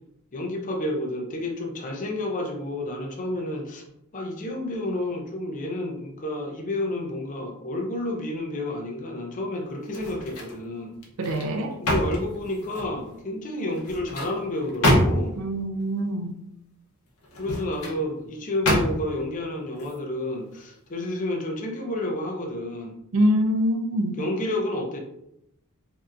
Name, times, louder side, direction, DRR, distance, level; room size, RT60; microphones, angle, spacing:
voice 1, 0.3-3.8 4.1-11.0 11.8-15.4 17.4-23.0 24.2-25.0, left 1 dB, 35° left, 1 dB, 0.5 m, -30 dB
sound 1, 9.9-10.6 11.0-13.0 13.7-15.5 17.2-18.0 18.6-19.2 19.7-19.9, equal, 90° left, 0.8 m, -26 dB
voice 2, 11.2-11.8 15.4-16.4 23.1-24.2, equal, 60° right, 5 dB, 0.4 m, -24 dB
3.3 x 2.7 x 2.4 m, 0.78 s
head